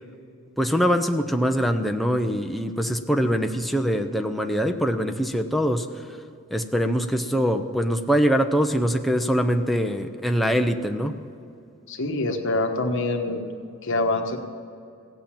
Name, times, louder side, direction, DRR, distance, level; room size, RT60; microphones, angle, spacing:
voice 1, 0.6-6.2 6.5-11.2, equal, ahead, 5 dB, 0.6 m, -23 dB
voice 2, 11.9-13.4 13.8-14.4, left 2 dB, 60° left, 5 dB, 1.3 m, -25 dB
16.5 x 8.1 x 8.8 m, 2.4 s
head